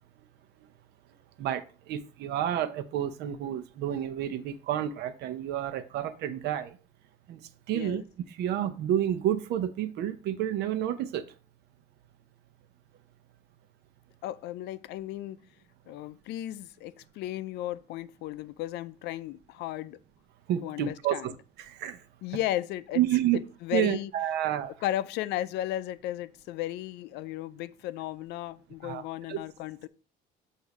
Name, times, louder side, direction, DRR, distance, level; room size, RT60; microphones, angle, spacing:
voice 1, 1.4-6.8 7.3-7.4 7.7-8.0 8.3-11.2 20.5-21.3 21.6-22.0 22.9-23.4 23.7-24.7 28.8-29.0 29.3-29.4, right 11 dB, 80° right, 0.7 m, -30 dB
voice 2, 7.7-8.0 14.2-15.4 15.9-20.0 20.6-21.3 22.2-23.0 23.3-24.1 24.8-29.9, left 13 dB, 85° left, 0.4 m, -35 dB
8.1 x 2.7 x 5.8 m
cardioid pair, 110°, 17 cm